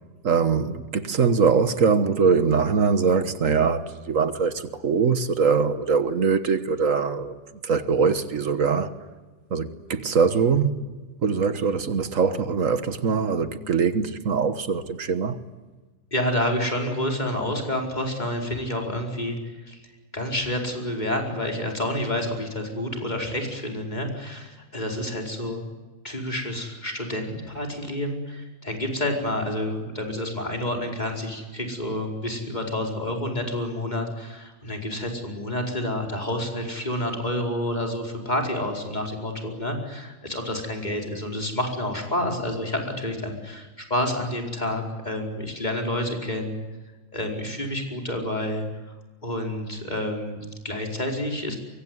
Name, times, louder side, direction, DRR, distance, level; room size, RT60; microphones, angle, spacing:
voice 1, 0.2-7.4 7.6-8.9 9.5-10.9 11.2-15.4, right 5 dB, 75° right, 1.8 m, -22 dB
voice 2, 16.1-19.8 20.1-25.6 26.0-46.6 47.1-48.6 49.2-51.6, left 1 dB, 35° left, 5.0 m, -29 dB
24.5 x 24.0 x 9.6 m
omnidirectional pair, 1.4 m